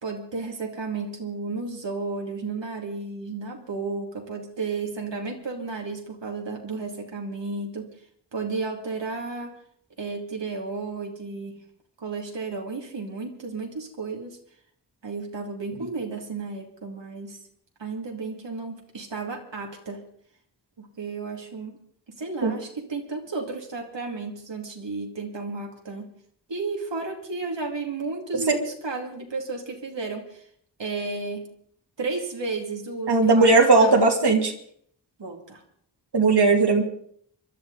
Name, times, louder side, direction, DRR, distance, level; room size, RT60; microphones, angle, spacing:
voice 1, 0.0-7.9 8.3-9.5 10.0-11.5 12.0-14.4 15.0-17.4 17.8-20.0 20.8-21.8 22.2-26.1 26.5-30.5 30.8-31.5 32.0-34.0 35.2-35.6, right 3 dB, 85° right, 0 dB, 2.6 m, -33 dB
voice 2, 33.1-34.5 36.1-36.8, right 3 dB, 65° right, 1 dB, 2.3 m, -18 dB
26.5 x 12.0 x 4.0 m, 0.63 s
wide cardioid pair, 90°, 42 cm